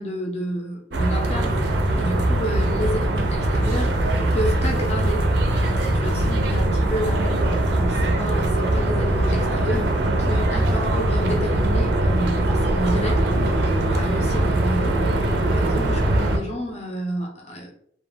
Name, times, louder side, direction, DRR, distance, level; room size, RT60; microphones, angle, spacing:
voice 1, 0.0-1.6 2.0-4.0 4.3-9.9 10.2-15.0 15.4-17.7, equal, 40° left, 0 dB, 0.7 m, -30 dB
sound 1, 0.9-16.4, right 1 dB, 70° right, 0.4 m, -21 dB
2.4 x 2.2 x 3.1 m, 0.67 s
head